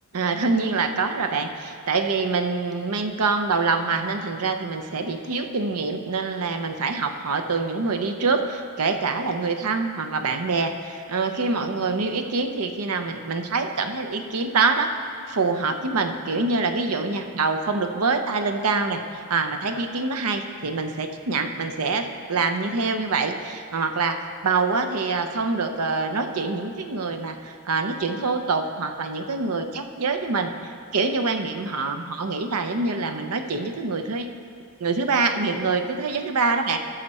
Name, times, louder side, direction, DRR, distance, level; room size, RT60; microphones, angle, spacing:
voice 1, 0.1-14.9 15.3-34.3 34.8-36.8, right 4 dB, 85° right, 7 dB, 0.7 m, -25 dB
13.5 x 6.5 x 4.3 m, 2.3 s
head